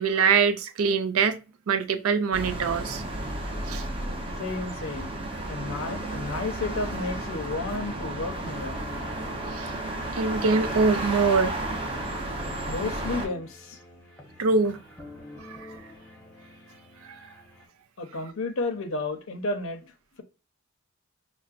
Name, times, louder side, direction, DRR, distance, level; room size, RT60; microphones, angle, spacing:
voice 1, 0.0-1.4 1.7-3.0 3.7-3.8 9.5-9.7 10.1-11.6 14.4-14.8 15.4-15.8, right 5 dB, 75° right, 0.4 m, -23 dB
sound 1, 2.3-13.3, right 1 dB, 25° right, 0.7 m, -33 dB
sound 2, 3.5-17.7, left 1 dB, 5° left, 0.8 m, -48 dB
voice 2, 4.4-5.1 5.5-8.8 12.6-13.8 18.0-19.9, left 3 dB, 65° left, 0.6 m, -32 dB
5.5 x 2.1 x 2.4 m
head